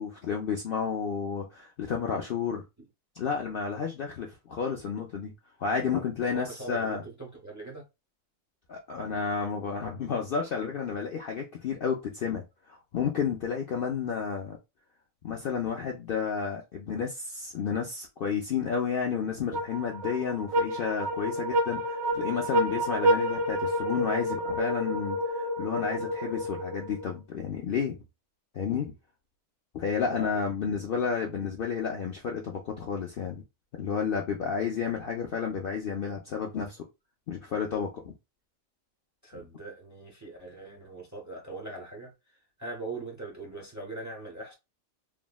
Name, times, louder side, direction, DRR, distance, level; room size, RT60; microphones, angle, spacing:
voice 1, 0.0-2.6 3.2-5.3 5.6-7.0 8.7-14.6 15.2-28.0 28.5-28.9 29.7-33.4 33.7-36.8 37.3-38.1 39.3-39.4, left 6 dB, 60° left, 0.6 m, -31 dB
voice 2, 6.2-7.8 30.1-30.4 39.2-42.1 42.6-44.5, right 2 dB, 15° right, 0.6 m, -41 dB
sound 1, 19.5-27.1, equal, 80° right, 1.5 m, -29 dB
3.4 x 2.1 x 2.2 m
omnidirectional pair, 1.4 m